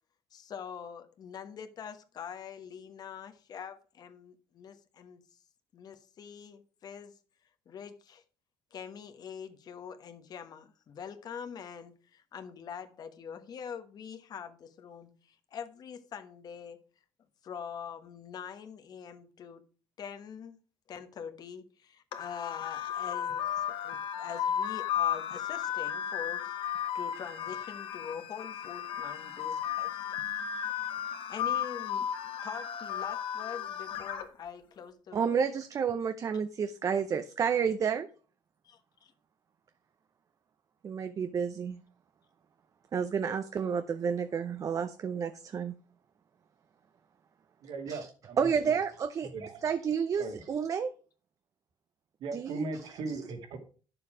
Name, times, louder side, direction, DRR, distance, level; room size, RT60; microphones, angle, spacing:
voice 1, 0.3-5.2 5.7-7.1 7.7-8.2 8.7-16.8 17.4-19.6 20.0-20.6 20.9-26.6 26.9-30.0 31.3-32.1 32.4-35.4 38.6-39.1, left 7 dB, 45° left, 1.2 m, -44 dB
sound 1, 22.1-34.2, left 9 dB, 70° left, 1.5 m, -34 dB
voice 2, 35.1-38.1 40.8-41.8 42.9-45.8 47.9-48.1 48.4-49.3 49.6-50.9 52.3-52.7, right 6 dB, 40° right, 0.6 m, -30 dB
voice 3, 47.6-48.8 49.3-49.6 50.2-50.4 52.2-53.6, right 3 dB, 70° right, 2.2 m, -39 dB
9.4 x 6.9 x 4.9 m
cardioid pair, 125°, 9 cm